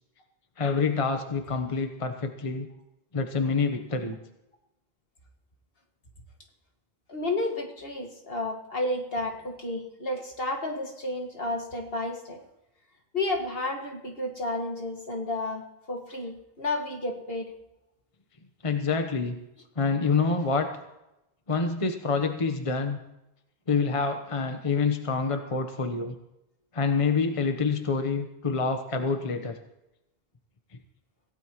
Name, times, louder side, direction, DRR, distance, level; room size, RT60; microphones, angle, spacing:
voice 1, 0.6-2.7 3.1-4.2 18.6-19.4 19.8-20.7 21.5-23.0 23.7-26.1 26.7-29.6, left 4 dB, 35° left, 6 dB, 1.1 m, -27 dB
voice 2, 7.1-12.4 13.1-17.5, left 2 dB, 65° left, 1 dB, 2.3 m, -31 dB
25.5 x 16.5 x 3.1 m, 0.91 s
omnidirectional pair, 1.0 m